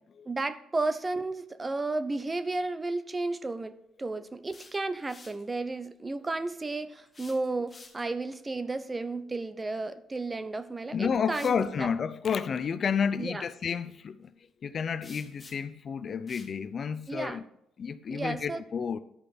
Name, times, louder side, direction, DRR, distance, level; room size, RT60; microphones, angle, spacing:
voice 1, 0.3-3.7 4.0-11.9 13.2-13.4 17.1-17.4 18.1-18.6, right 3 dB, 20° right, 0.7 m, -33 dB
sound 1, 4.3-5.5 7.1-8.2 10.3-10.4 11.2-11.7 15.0-15.8 16.3-16.6, left 3 dB, 25° left, 1.6 m, -52 dB
voice 2, 10.9-14.3 14.6-17.4 17.8-19.0, left 6 dB, 45° left, 0.5 m, -30 dB
11.0 x 5.2 x 5.9 m
cardioid pair, 95°, 0 cm